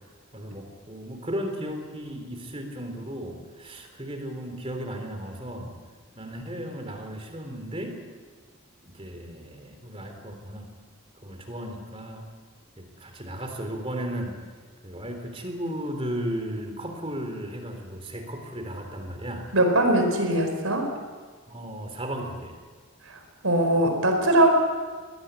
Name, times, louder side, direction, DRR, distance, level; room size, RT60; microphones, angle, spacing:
voice 1, 0.3-5.8 6.2-8.0 8.8-10.7 11.2-12.2 12.8-14.3 14.8-19.5 21.5-22.6, equal, 25° right, 4 dB, 3.5 m, -35 dB
voice 2, 19.5-20.9 23.4-24.5, right 1 dB, 75° right, 4 dB, 4.8 m, -21 dB
22.5 x 19.0 x 8.3 m, 1.5 s
head